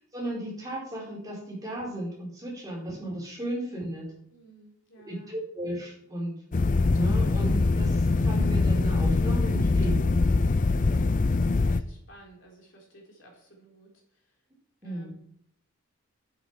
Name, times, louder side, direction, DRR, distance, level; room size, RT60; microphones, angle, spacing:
voice 1, 0.1-4.1 5.0-6.3 6.9-10.1 14.8-15.1, right 1 dB, 15° right, -3 dB, 4.9 m, -35 dB
voice 2, 4.3-5.3 10.7-14.2 14.8-15.2, right 1 dB, 55° left, -1 dB, 4.1 m, -55 dB
sound 1, 6.5-11.8, left 3 dB, 35° left, 0.4 m, -23 dB
12.0 x 8.2 x 5.9 m, 0.68 s
head